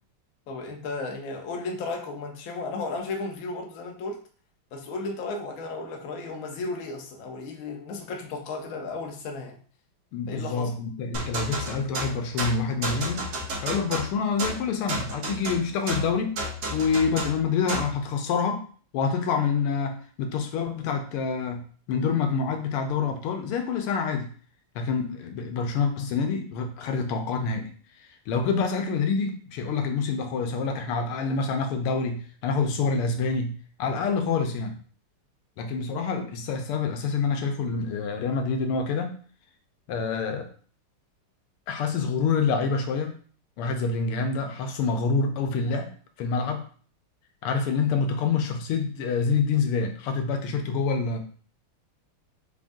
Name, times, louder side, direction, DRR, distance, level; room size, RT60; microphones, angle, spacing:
voice 1, 0.5-4.2 4.7-9.6 10.3-10.7, left 3 dB, 65° left, 2 dB, 0.9 m, -34 dB
voice 2, 10.1-13.3 13.6-16.4 16.7-18.6 18.9-21.6 21.9-24.3 24.7-27.7 28.3-34.8 35.6-39.2 39.9-40.5 41.7-43.1 43.6-45.9 46.2-46.6 47.4-51.2, left 5 dB, 90° left, 4 dB, 1.6 m, -27 dB
sound 1, 11.1-18.0, right 1 dB, 55° right, 1.2 m, -32 dB
4.5 x 3.6 x 2.6 m, 0.43 s
omnidirectional pair, 2.4 m